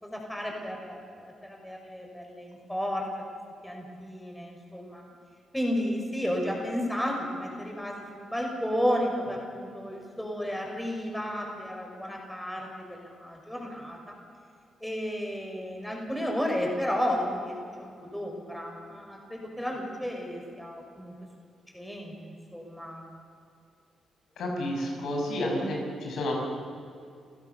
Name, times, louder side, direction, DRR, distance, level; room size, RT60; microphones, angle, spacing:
voice 1, 0.0-3.1 3.6-5.0 5.5-14.2 14.8-21.1 21.7-23.1, equal, 5° left, 0 dB, 5.9 m, -33 dB
voice 2, 24.4-26.4, left 1 dB, 80° left, 0 dB, 6.0 m, -30 dB
29.5 x 15.5 x 7.1 m, 2.5 s
cardioid pair, 85°, 0 cm